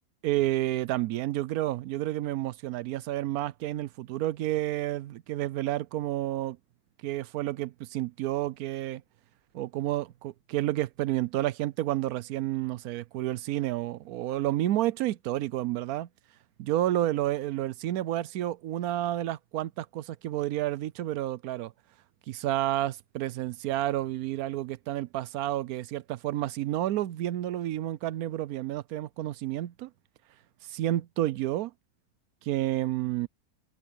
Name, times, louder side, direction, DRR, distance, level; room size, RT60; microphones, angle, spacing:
voice 1, 0.2-6.6 7.0-9.0 9.5-16.1 16.6-21.7 22.3-29.9 30.7-31.7 32.4-33.3, right 14 dB, 90° right, 1.1 m, -30 dB
omnidirectional pair, 1.5 m